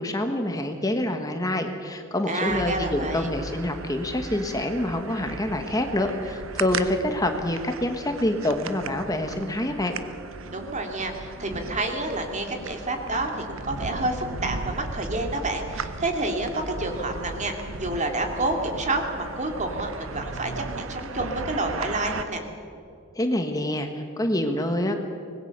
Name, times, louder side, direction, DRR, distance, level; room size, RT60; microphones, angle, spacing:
voice 1, 0.0-9.9 23.1-25.0, left 1 dB, 20° left, 5 dB, 1.4 m, -26 dB
voice 2, 2.3-3.3 10.5-22.4, right 2 dB, 35° right, 4 dB, 2.7 m, -29 dB
sound 1, 2.5-22.2, right 3 dB, 85° right, 1.1 m, -37 dB
25.0 x 20.0 x 6.7 m, 2.6 s
head